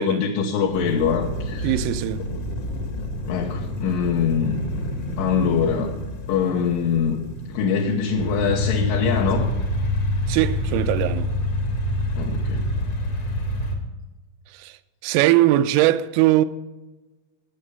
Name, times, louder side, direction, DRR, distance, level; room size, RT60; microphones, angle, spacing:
voice 1, 0.0-1.8 2.3-2.4 3.3-4.6 5.2-6.0 6.3-7.2 7.5-9.5 12.2-12.7, left 6 dB, 75° left, 3.2 m, -23 dB
sound 1, 0.7-13.8, left 1 dB, 55° left, 1.7 m, -27 dB
voice 2, 1.6-2.3 10.3-11.3 14.5-16.5, right 15 dB, 85° right, 3.2 m, -21 dB
19.0 x 6.8 x 5.3 m
omnidirectional pair, 5.9 m